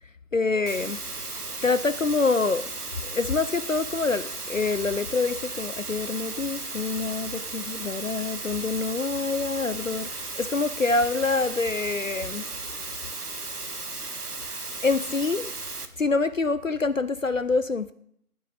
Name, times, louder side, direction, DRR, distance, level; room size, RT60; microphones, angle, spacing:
voice 1, 0.3-1.0 1.3-2.6 3.0-12.4 14.8-15.5 16.0-17.9, left 3 dB, 60° left, 0.5 m, -26 dB
Water, 0.7-15.9, right 3 dB, 90° right, 1.4 m, -35 dB
19.0 x 9.5 x 3.9 m
figure-of-eight pair, 170°, 44 cm